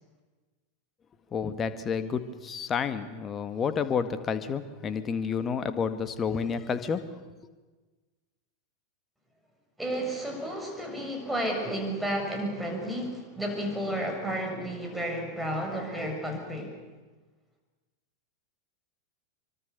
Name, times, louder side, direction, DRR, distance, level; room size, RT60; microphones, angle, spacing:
voice 1, 1.3-7.0, left 6 dB, 25° left, 11 dB, 1.9 m, -30 dB
voice 2, 9.8-16.7, right 1 dB, 5° right, 2 dB, 6.9 m, -32 dB
25.5 x 24.5 x 6.9 m, 1.3 s
figure-of-eight pair, 90°, 0 cm